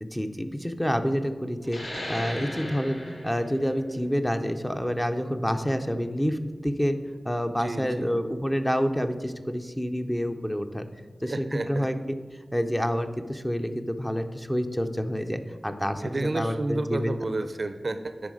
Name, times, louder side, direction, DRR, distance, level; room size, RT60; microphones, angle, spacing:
voice 1, 0.0-7.0 7.3-10.9 11.2-12.2 12.5-17.1, equal, 10° left, 7 dB, 0.5 m, -28 dB
sound 1, 1.6-6.8, left 1 dB, 70° left, 2.1 m, -38 dB
voice 2, 7.5-8.2 11.2-11.9 16.0-18.3, right 2 dB, 50° right, 10 dB, 0.4 m, -31 dB
10.0 x 3.8 x 4.9 m, 1.4 s
wide cardioid pair, 90°, 0 cm